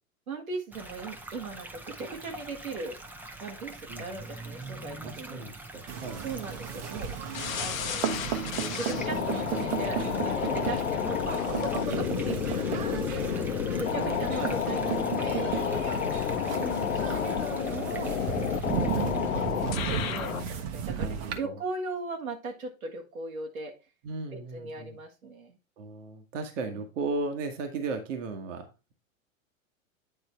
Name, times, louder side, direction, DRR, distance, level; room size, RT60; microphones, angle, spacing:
voice 1, 0.3-3.0 3.4-5.4 6.2-7.1 7.6-8.1 8.8-13.5 13.8-15.4 16.5-18.1 18.8-19.3 19.7-23.7 24.3-25.6 26.7-26.8, right 3 dB, 85° right, 2 dB, 1.6 m, -38 dB
sound 1, 0.7-19.5, right 2 dB, 5° right, 0.7 m, -45 dB
voice 2, 5.0-6.2 10.5-10.7 11.9-12.0 13.9-14.5 15.9-16.9 21.0-21.5 24.0-25.0 25.8-28.6, right 3 dB, 65° right, 5 dB, 1.5 m, -36 dB
sound 2, 5.9-21.4, right 7 dB, 45° right, 1.1 m, -34 dB
sound 3, 7.3-20.5, left 8 dB, 75° left, 0.8 m, -30 dB
9.1 x 3.9 x 4.3 m, 0.29 s
hypercardioid pair, 105°, 41 cm